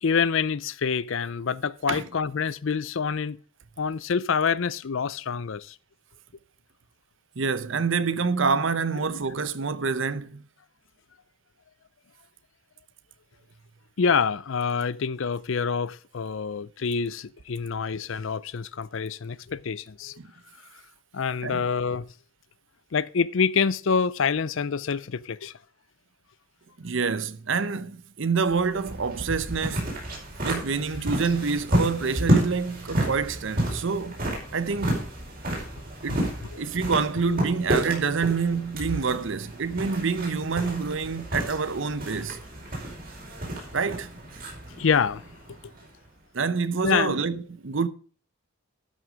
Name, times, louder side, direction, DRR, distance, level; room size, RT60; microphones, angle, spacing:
voice 1, 0.0-3.4 3.8-5.8 14.0-20.2 21.1-22.1 22.9-25.5 36.5-36.6 44.8-45.2 45.6-45.7 46.8-47.2, left 6 dB, 65° left, 0.5 m, -26 dB
voice 2, 7.4-10.4 20.2-20.3 21.4-21.6 26.8-29.9 30.4-34.2 34.5-35.0 36.0-36.3 36.6-42.4 43.7-44.1 46.3-47.9, right 5 dB, 60° right, 0.7 m, -27 dB
sound 1, 28.5-46.1, right 1 dB, 40° right, 4.8 m, -31 dB
12.5 x 6.3 x 5.1 m
head